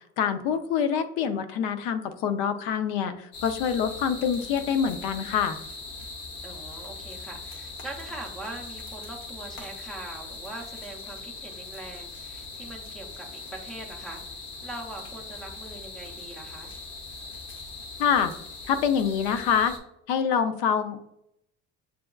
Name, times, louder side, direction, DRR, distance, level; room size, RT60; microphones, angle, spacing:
voice 1, 0.2-5.6 18.0-18.3 18.7-19.7 20.1-21.0, left 7 dB, 80° left, 10 dB, 0.5 m, -25 dB
sound 1, 3.3-19.8, left 3 dB, 40° left, 0.7 m, -41 dB
voice 2, 6.4-14.2 14.6-16.7, right 2 dB, ahead, 0 dB, 0.4 m, -42 dB
6.6 x 2.3 x 2.2 m, 0.78 s
cardioid pair, 175°, 30 cm